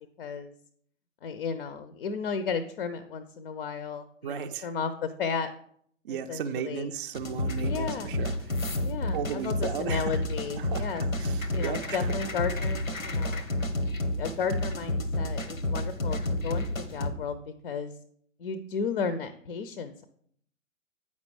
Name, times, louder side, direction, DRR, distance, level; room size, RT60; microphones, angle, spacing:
voice 1, 0.2-0.5 1.2-5.5 6.1-6.9 7.6-8.2 8.8-11.0 11.5-13.4 14.2-17.9 18.4-20.0, left 6 dB, 45° left, 12 dB, 0.5 m, -34 dB
voice 2, 4.2-4.7 6.0-8.8 9.1-10.2 10.6-10.9 11.2-12.1, right 8 dB, 45° right, 7 dB, 0.4 m, -35 dB
sound 1, 7.1-17.1, left 1 dB, 90° left, 0.8 m, -30 dB
8.3 x 5.3 x 3.2 m, 0.65 s
figure-of-eight pair, 115°, 39 cm